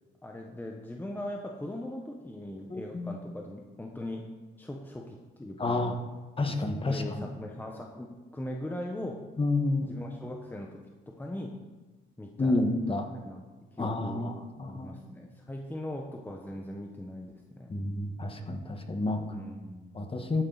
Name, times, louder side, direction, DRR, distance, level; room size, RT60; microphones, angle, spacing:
voice 1, 0.2-4.2 4.6-5.8 6.5-6.6 6.9-9.2 9.8-11.6 12.2-12.6 13.2-13.5 13.7-14.3 14.7-17.7 19.3-20.0, left 1 dB, 10° left, 2 dB, 1.1 m, -40 dB
voice 2, 2.7-3.1 5.6-6.0 6.4-7.0 9.4-10.0 12.4-13.1 13.8-15.0 17.7-19.2 19.9-20.4, left 2 dB, 25° left, 5 dB, 1.5 m, -29 dB
13.0 x 9.1 x 4.0 m, 1.3 s
cardioid pair, 90°, 20 cm